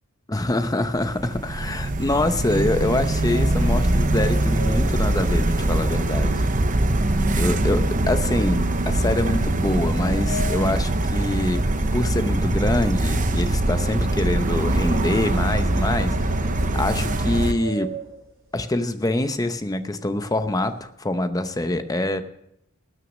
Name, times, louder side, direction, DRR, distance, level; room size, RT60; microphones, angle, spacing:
voice 1, 0.3-6.4 7.4-11.6 11.9-17.9 18.5-22.2, left 1 dB, 15° left, 9 dB, 0.7 m, -25 dB
sound 1, 0.9-17.5, right 1 dB, 35° right, 0.7 m, -22 dB
sound 2, 2.3-6.6 6.9-7.2 7.7-7.9 8.7-12.0 12.3-18.5 19.1-19.2 19.5-19.8 20.1-20.8, right 1 dB, 15° right, 4.7 m, -39 dB
19.0 x 6.4 x 6.3 m, 0.79 s
head